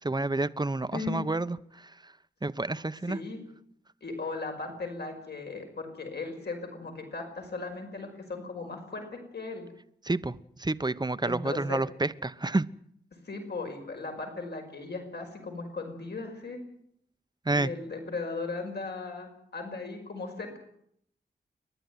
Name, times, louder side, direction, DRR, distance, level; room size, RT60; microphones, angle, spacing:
voice 1, 0.0-2.1 2.4-3.2 10.0-12.7 17.4-17.7, right 2 dB, 25° right, 14 dB, 1.0 m, -29 dB
voice 2, 0.9-1.2 3.1-3.4 4.0-9.7 11.2-11.8 13.2-16.6 17.5-20.6, left 3 dB, 70° left, 3 dB, 5.3 m, -37 dB
29.5 x 11.5 x 9.4 m, 0.72 s
cardioid pair, 55°, 18 cm